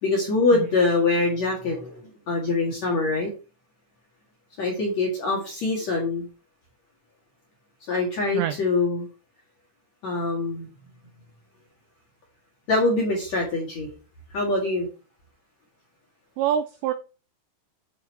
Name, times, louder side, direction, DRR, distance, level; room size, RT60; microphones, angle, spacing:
voice 1, 0.0-3.3 4.6-6.2 7.9-9.1 10.0-10.7 12.7-13.9 14.3-14.9, left 3 dB, 50° left, -2 dB, 2.2 m, -24 dB
voice 2, 16.4-16.9, right 10 dB, 90° right, 10 dB, 2.5 m, -25 dB
9.3 x 5.7 x 4.5 m, 0.34 s
omnidirectional pair, 5.9 m